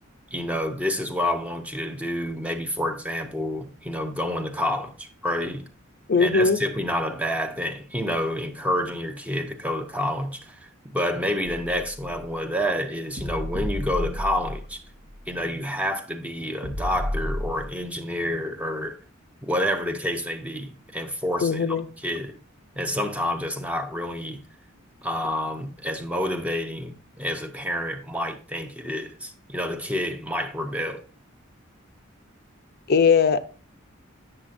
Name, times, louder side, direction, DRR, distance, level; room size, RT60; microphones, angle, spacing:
voice 1, 0.3-5.7 6.2-14.8 15.3-19.0 19.4-22.4 22.8-24.4 25.0-31.0, left 1 dB, 5° right, 0.7 m, -28 dB
voice 2, 6.1-6.6 21.4-21.9 32.9-33.4, left 5 dB, 50° left, 0.5 m, -19 dB
sound 1, 11.4-12.3 13.2-14.9 15.1-15.2 16.6-17.8, equal, 45° right, 0.9 m, -31 dB
8.7 x 6.6 x 2.5 m
head